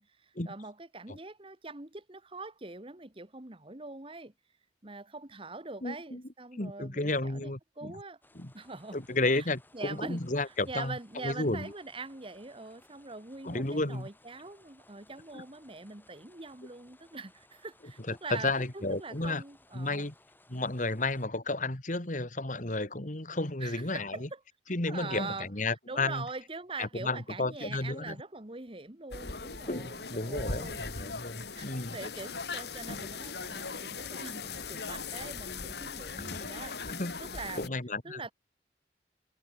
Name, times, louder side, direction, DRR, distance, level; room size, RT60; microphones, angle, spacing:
voice 1, 0.0-4.3 4.8-8.2 8.5-9.0 9.3-9.5 9.7-20.1 23.6-24.4 24.9-25.5 25.9-30.8 31.5-37.7 38.0-38.3, right 3 dB, 30° right, 1.5 m, -43 dB
voice 2, 5.8-6.2 6.6-8.0 8.4-8.5 8.9-11.0 11.2-11.7 13.4-14.1 15.3-15.4 18.1-19.4 19.7-20.1 20.5-24.3 24.7-26.2 26.8-28.2 29.7-32.0 36.2-36.5 36.9-37.1 37.6-38.2, left 2 dB, 45° left, 2.3 m, -32 dB
sound 1, 8.2-21.3, left 2 dB, 10° left, 7.6 m, -62 dB
sound 2, 29.1-37.7, left 4 dB, 65° left, 2.5 m, -39 dB
head